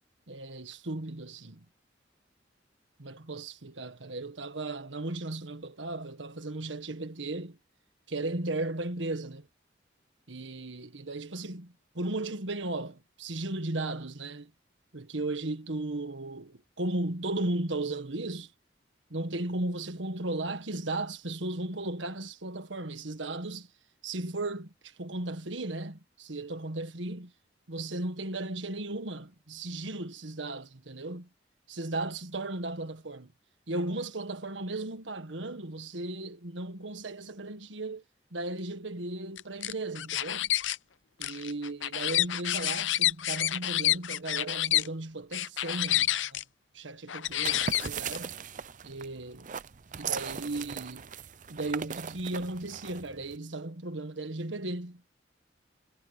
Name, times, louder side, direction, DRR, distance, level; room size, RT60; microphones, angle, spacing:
voice 1, 0.3-1.6 3.0-7.6 8.1-9.5 10.3-14.5 14.9-18.5 19.1-23.7 24.0-27.3 27.7-31.3 31.7-33.3 33.7-38.0 38.3-40.5 41.2-46.4 46.7-48.4 48.8-49.5 50.0-51.1 51.5-55.0, right 2 dB, 85° right, 1.7 m, -36 dB
sound 1, 39.4-40.8 41.2-44.9 45.3-46.4 47.1-48.2, left 13 dB, 90° left, 0.7 m, -28 dB
sound 2, 47.3-53.4, right 7 dB, 45° right, 0.6 m, -39 dB
head